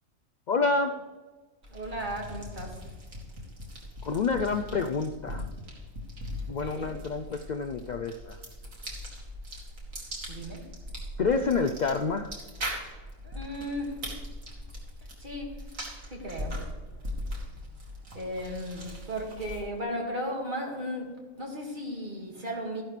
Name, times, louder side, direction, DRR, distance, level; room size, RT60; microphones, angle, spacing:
voice 1, 0.5-1.0 4.0-5.5 6.5-8.4 11.2-12.3, left 4 dB, 85° left, 8 dB, 0.4 m, -28 dB
sound 1, 1.6-19.8, equal, 90° right, 2.8 m, -40 dB
voice 2, 1.7-2.9 6.5-7.0 10.3-10.7 13.2-14.1 15.2-15.6 16.1-16.6 18.1-22.8, equal, 40° right, 0 dB, 2.2 m, -36 dB
13.5 x 11.5 x 3.3 m, 1.3 s
omnidirectional pair, 1.4 m